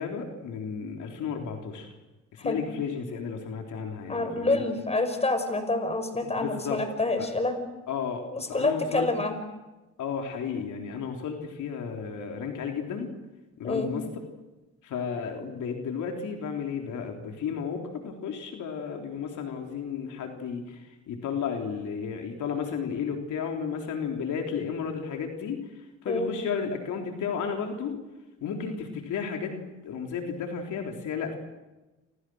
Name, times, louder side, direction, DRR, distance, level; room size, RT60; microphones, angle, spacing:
voice 1, 0.0-1.9 2.3-4.6 6.2-6.8 7.2-7.3 7.9-9.1 10.0-13.1 13.6-14.0 14.8-20.8 21.1-25.6 26.0-28.0 28.4-31.4, left 6 dB, 75° left, 3 dB, 4.0 m, -33 dB
voice 2, 4.1-7.7 8.3-9.3 13.6-13.9 26.1-26.3, left 2 dB, 20° left, 7 dB, 5.7 m, -27 dB
29.0 x 27.0 x 6.5 m, 1.1 s
cardioid pair, 90°, 30 cm